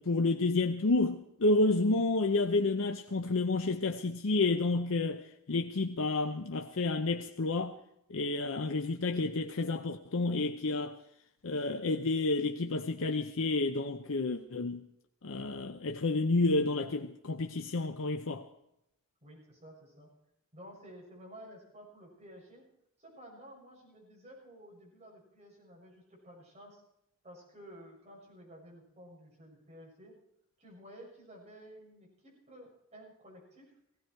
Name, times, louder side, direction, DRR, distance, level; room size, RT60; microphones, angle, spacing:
voice 1, 0.0-7.8 8.1-11.0 11.4-14.9 15.2-18.5, left 3 dB, 65° left, 0.7 m, -30 dB
voice 2, 19.2-20.1 20.5-22.6 23.0-26.8 27.2-30.1 30.6-33.7, equal, 30° right, 6.6 m, -53 dB
17.5 x 16.0 x 4.6 m
head